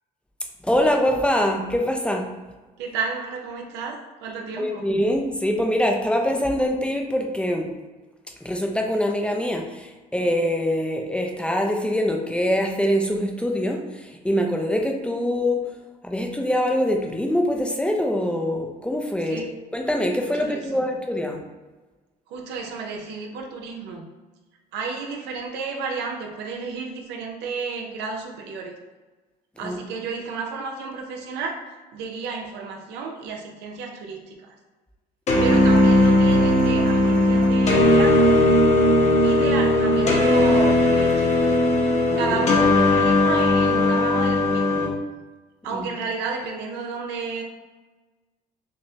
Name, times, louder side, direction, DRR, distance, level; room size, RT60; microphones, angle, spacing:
voice 1, 0.6-2.3 4.6-7.7 8.4-15.6 16.0-19.5 19.7-21.4 29.6-29.8 35.5-35.8 42.1-42.4 45.7-45.8, equal, 5° left, 1 dB, 0.5 m, -24 dB
voice 2, 2.8-4.9 19.3-19.5 20.3-20.6 22.3-24.0 24.7-28.8 29.6-31.6 31.9-34.6 35.4-38.4 39.2-41.4 42.0-44.9 45.6-47.4, right 5 dB, 90° right, 3 dB, 0.6 m, -32 dB
sound 1, 35.3-44.9, left 1 dB, 40° left, 1.0 m, -18 dB
6.1 x 2.0 x 2.8 m, 1.2 s
cardioid pair, 110°, 17 cm